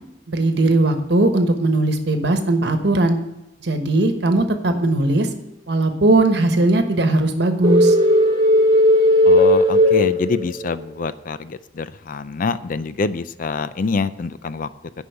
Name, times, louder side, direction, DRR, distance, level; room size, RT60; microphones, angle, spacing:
voice 1, 0.3-3.2 3.6-5.3 5.7-8.0, right 2 dB, 65° right, 7 dB, 1.2 m, -18 dB
sound 1, 7.6-10.8, left 1 dB, 25° right, 1.2 m, -15 dB
voice 2, 9.2-14.7, left 4 dB, 45° left, 14 dB, 0.4 m, -26 dB
9.8 x 5.5 x 6.9 m, 0.88 s
head